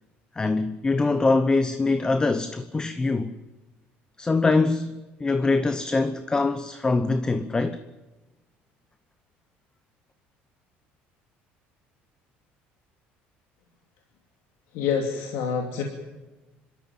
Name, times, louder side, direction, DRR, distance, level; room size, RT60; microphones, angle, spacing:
voice 1, 0.3-3.3 4.2-4.9 5.2-7.8, left 3 dB, 20° left, 1.0 m, -23 dB
voice 2, 14.7-15.8, left 6 dB, 75° left, 2.6 m, -26 dB
27.0 x 13.0 x 9.2 m
cardioid pair, 120°, 4 cm